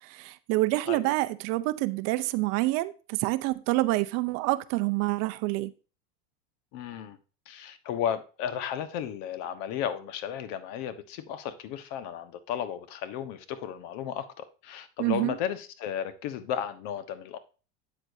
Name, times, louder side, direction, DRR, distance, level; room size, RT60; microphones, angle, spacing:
voice 1, 0.0-5.7 15.0-15.4, right 19 dB, 50° right, 0.6 m, -27 dB
voice 2, 6.7-7.2 7.5-17.4, left 9 dB, 55° left, 1.3 m, -34 dB
8.8 x 8.0 x 2.7 m
supercardioid pair, 125°, 33 cm